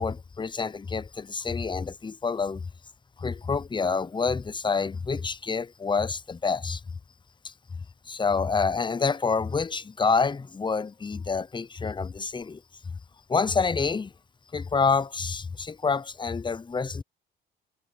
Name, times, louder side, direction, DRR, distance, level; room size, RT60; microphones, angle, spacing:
voice 1, 0.0-2.6 3.2-6.8 7.4-7.5 8.1-12.6 13.3-14.1 14.5-17.0, left 5 dB, 25° left, 0.8 m, -27 dB
cardioid pair, 90°, 20 cm